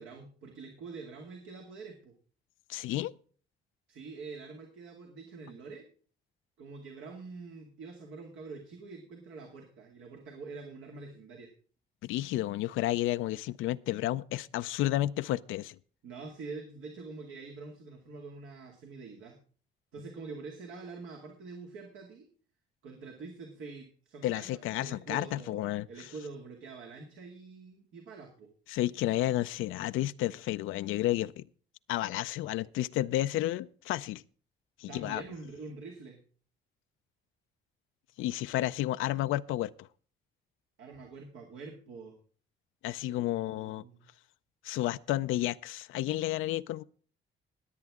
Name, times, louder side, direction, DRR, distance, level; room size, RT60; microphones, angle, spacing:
voice 1, 0.0-2.1 3.9-5.9 6.6-11.5 16.0-19.4 19.9-22.3 22.8-24.5 24.8-28.5 34.9-36.2 40.8-42.2 43.1-44.1, right 4 dB, 85° right, 2.3 m, -45 dB
voice 2, 2.7-3.1 12.0-15.8 24.2-25.9 28.7-31.5 31.9-34.2 34.8-35.2 38.2-39.9 42.8-43.8 44.6-46.8, left 15 dB, 85° left, 0.5 m, -31 dB
21.0 x 8.1 x 3.6 m
cardioid pair, 90°, 20 cm